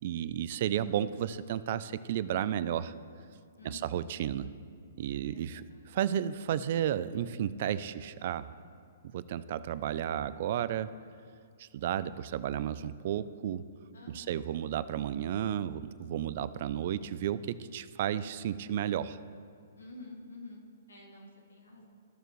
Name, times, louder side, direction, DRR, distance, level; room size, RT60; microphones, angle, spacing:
voice 1, 0.0-2.9 3.6-4.5 5.0-8.5 9.0-10.9 11.6-13.7 14.1-19.2, right 10 dB, 50° right, 15 dB, 0.3 m, -33 dB
voice 2, 3.6-4.0 5.3-5.8 13.9-14.5 19.8-21.8, left 2 dB, 90° left, -1 dB, 2.1 m, -49 dB
14.0 x 6.6 x 3.1 m, 2.3 s
hypercardioid pair, 135°, 0 cm